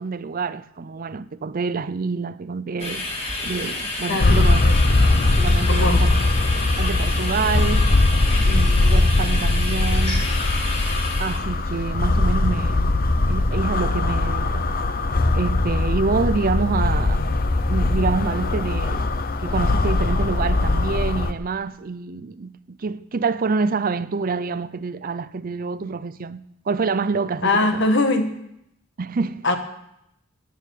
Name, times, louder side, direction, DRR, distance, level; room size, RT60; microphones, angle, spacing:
voice 1, 0.0-3.1 3.4-4.6 5.4-6.2 6.8-7.9 8.4-10.3 11.2-13.0 13.3-14.7 15.3-17.2 17.7-19.1 19.4-27.9 29.0-29.5, right 4 dB, 45° right, 0.5 m, -27 dB
sound 1, 2.8-11.4, left 2 dB, 30° left, 3.6 m, -30 dB
voice 2, 4.1-4.7 5.7-6.0 27.4-28.3 29.4-29.6, left 2 dB, 65° left, 1.6 m, -21 dB
sound 2, 4.2-21.3, left 2 dB, 50° left, 0.8 m, -20 dB
14.0 x 9.5 x 6.7 m
head